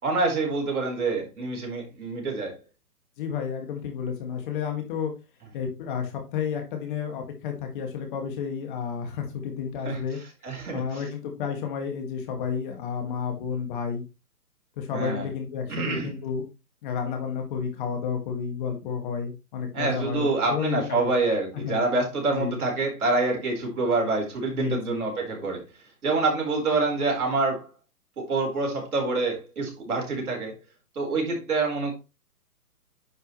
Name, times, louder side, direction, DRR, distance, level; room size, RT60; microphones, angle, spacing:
voice 1, 0.0-2.6 9.8-10.0 10.4-10.8 14.9-15.3 15.7-16.1 19.7-25.6 26.0-27.7 28.2-30.6 30.9-31.9, right 3 dB, 65° right, 0 dB, 4.5 m, -26 dB
voice 2, 3.2-5.1 5.5-10.2 10.7-14.0 14.8-16.4 16.8-21.1 21.6-21.8 22.3-22.6 24.5-25.1, left 6 dB, 30° left, 4 dB, 2.0 m, -31 dB
9.6 x 5.4 x 3.2 m, 0.28 s
hypercardioid pair, 145°, 47 cm